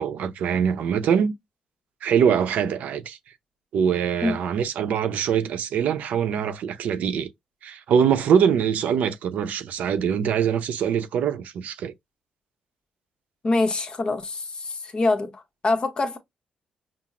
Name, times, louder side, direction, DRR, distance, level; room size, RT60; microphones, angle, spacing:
voice 1, 0.0-1.3 2.0-3.2 3.7-7.3 7.6-11.9, right 7 dB, 75° right, 0.6 m, -23 dB
voice 2, 13.4-16.2, left 3 dB, 35° left, 0.9 m, -25 dB
5.8 x 2.0 x 2.4 m
cardioid pair, 105°, 3 cm